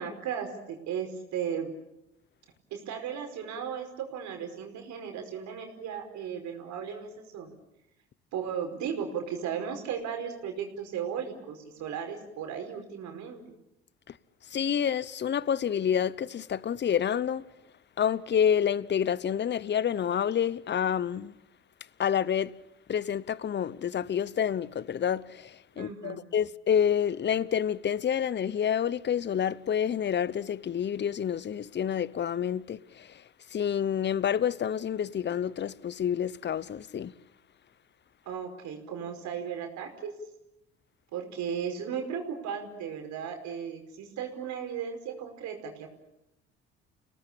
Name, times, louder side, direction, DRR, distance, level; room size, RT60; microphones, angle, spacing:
voice 1, 0.0-1.7 2.7-7.5 8.3-13.4 25.7-26.2 38.2-40.1 41.1-45.9, right 7 dB, 65° right, 5.1 m, -36 dB
voice 2, 14.5-17.4 18.0-21.3 22.0-22.5 22.9-33.2 33.5-37.1, left 8 dB, 35° left, 0.9 m, -28 dB
29.5 x 18.5 x 8.7 m
hypercardioid pair, 70°, 31 cm